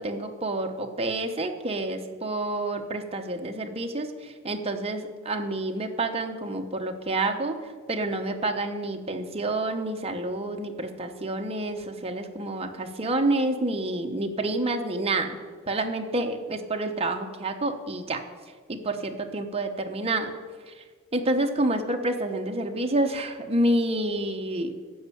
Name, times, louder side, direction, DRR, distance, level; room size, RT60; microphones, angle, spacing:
voice 1, 0.0-15.4 15.7-18.2 18.7-20.3 20.7-20.8 21.1-24.8, right 2 dB, 30° right, 4 dB, 1.0 m, -28 dB
13.5 x 5.5 x 8.5 m, 1.6 s
head